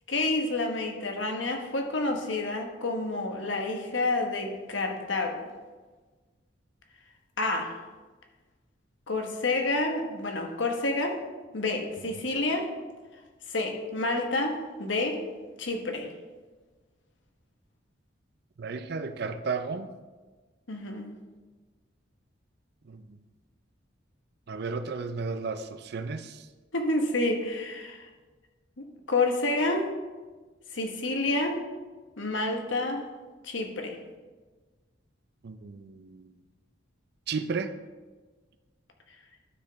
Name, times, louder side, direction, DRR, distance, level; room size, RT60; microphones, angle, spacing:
voice 1, 0.1-5.5 7.4-7.7 9.1-11.2 11.5-12.7 13.5-15.2 15.6-16.1 20.7-21.1 26.7-28.1 28.8-29.9 30.7-31.6 32.2-33.0 33.4-34.0, left 2 dB, 80° left, 1.1 m, -29 dB
voice 2, 18.6-19.9 22.9-23.0 24.5-26.4 35.4-36.3 37.3-37.8, right 4 dB, 55° right, 0.5 m, -33 dB
11.5 x 4.9 x 3.5 m
head